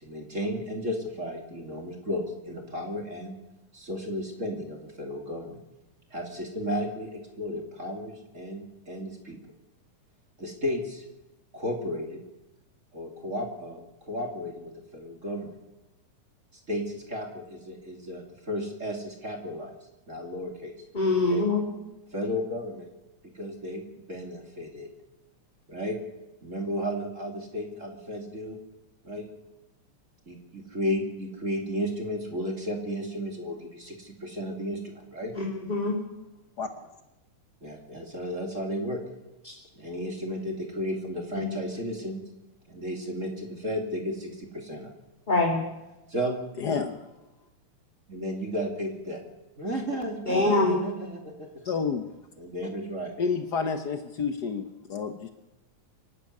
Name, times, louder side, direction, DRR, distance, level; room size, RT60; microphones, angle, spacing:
voice 1, 0.0-3.3 3.7-5.6 6.1-9.4 10.4-11.0 11.5-12.2 12.9-15.5 16.7-19.7 20.1-20.7 21.3-21.5 22.1-22.9 23.3-24.9 25.7-26.0 26.4-28.6 29.0-29.3 30.3-35.3 37.6-39.0 39.7-42.2 42.7-44.9 46.1-46.3 48.1-49.2 49.6-51.6 52.4-53.1, equal, 25° right, 3 dB, 2.8 m, -33 dB
voice 2, 20.9-21.7 35.3-36.0 41.4-41.5 45.3-45.6 50.3-50.8, left 2 dB, 15° left, -1 dB, 2.5 m, -24 dB
voice 3, 46.6-47.0 51.7-52.1 53.2-55.3, left 5 dB, 90° left, 8 dB, 0.8 m, -29 dB
25.0 x 12.0 x 9.6 m, 0.98 s
omnidirectional pair, 3.5 m